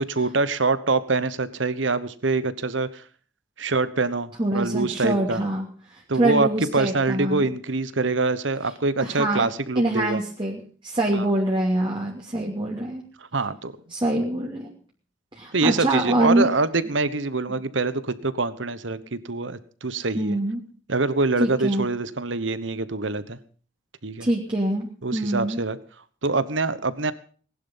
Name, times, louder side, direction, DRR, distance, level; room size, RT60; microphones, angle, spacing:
voice 1, 0.0-3.0 3.6-5.4 6.1-10.2 11.1-11.3 13.3-13.7 15.5-20.4 20.9-23.4 24.0-24.3 25.0-25.8 26.2-27.1, right 3 dB, 70° right, 15 dB, 1.1 m, -25 dB
voice 2, 4.4-7.5 9.0-9.4 9.7-13.0 13.9-14.7 15.3-16.5 20.1-20.6 21.4-21.9 24.2-25.6, right 1 dB, 25° right, -2 dB, 2.7 m, -25 dB
19.5 x 11.5 x 5.6 m, 0.44 s
head